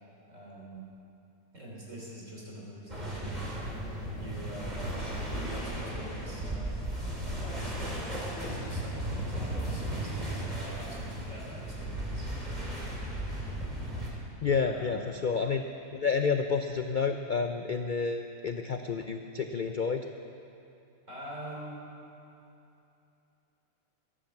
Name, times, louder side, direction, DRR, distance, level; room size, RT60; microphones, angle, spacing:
voice 1, 0.3-0.9 1.5-3.6 4.1-4.9 5.3-6.7 7.4-12.3 14.7-15.0 21.1-21.8, equal, 50° right, -4 dB, 3.7 m, -45 dB
sound 1, 2.9-14.1, right 1 dB, 25° right, 2.9 m, -35 dB
voice 2, 14.4-15.7 15.9-20.0, left 5 dB, 75° left, 5 dB, 0.4 m, -30 dB
16.0 x 11.0 x 7.2 m, 2.8 s
omnidirectional pair, 1.7 m